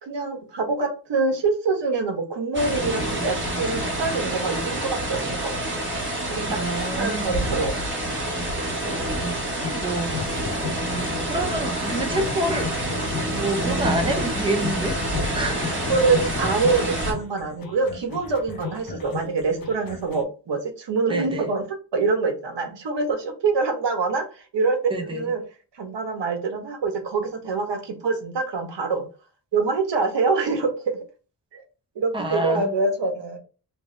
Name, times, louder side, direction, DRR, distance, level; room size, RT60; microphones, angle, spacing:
voice 1, 0.0-5.9 6.3-8.1 15.9-21.6 21.9-25.4 25.7-29.0 29.5-31.0 31.5-31.6 31.9-33.4, right 4 dB, 90° right, 1.1 m, -25 dB
sound 1, 2.5-17.1, right 1 dB, 30° right, 1.3 m, -27 dB
voice 2, 6.5-7.3 9.2-10.2 11.3-12.7 13.2-15.0 15.3-15.8 21.1-21.5 24.9-25.2 32.1-32.7, right 1 dB, 10° right, 0.6 m, -27 dB
sound 2, 9.6-20.2, left 6 dB, 55° left, 0.7 m, -37 dB
3.2 x 2.7 x 3.1 m
wide cardioid pair, 180°, 42 cm